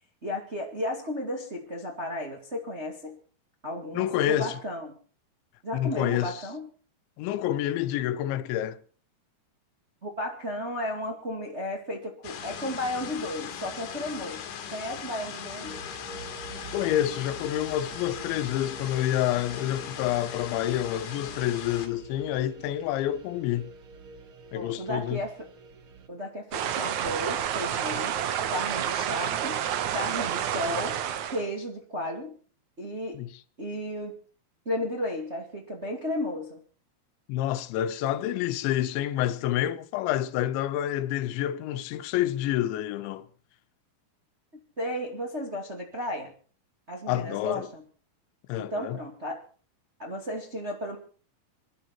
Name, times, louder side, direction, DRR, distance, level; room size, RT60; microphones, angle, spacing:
voice 1, 0.2-3.2 3.6-4.9 5.6-6.7 10.0-14.4 14.7-15.8 24.5-25.5 26.1-28.2 28.5-29.6 29.9-31.0 31.3-32.4 32.8-33.2 33.6-34.1 34.6-36.6 44.8-46.3 46.9-47.8 48.7-49.4 50.0-51.0, left 1 dB, 25° right, 1.4 m, -34 dB
voice 2, 3.9-4.6 5.7-6.4 7.2-8.8 16.7-23.7 24.5-25.2 33.1-33.3 37.3-43.3 47.1-47.7 48.5-49.0, left 12 dB, 90° left, 3.3 m, -28 dB
sound 1, 12.2-21.9, left 8 dB, 70° left, 4.0 m, -39 dB
sound 2, 15.6-26.1, right 4 dB, 65° right, 1.3 m, -46 dB
sound 3, 26.5-31.5, right 10 dB, 90° right, 1.6 m, -29 dB
27.5 x 11.0 x 4.3 m
omnidirectional pair, 5.1 m